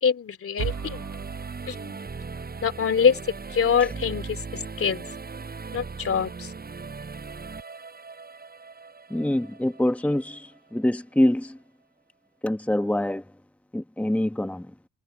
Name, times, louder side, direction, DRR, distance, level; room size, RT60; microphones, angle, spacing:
voice 1, 0.0-1.1 1.7-2.0 2.6-3.2 3.5-5.0 5.7-6.5, left 6 dB, 45° left, 3.1 m, -24 dB
sound 1, 0.6-10.9, right 4 dB, 30° right, 7.0 m, -38 dB
sound 2, 0.6-2.6, right 10 dB, 65° right, 7.8 m, -37 dB
voice 2, 9.1-11.6 12.4-13.2 13.7-14.7, left 1 dB, 5° left, 1.4 m, -25 dB
cardioid pair, 90°, 30 cm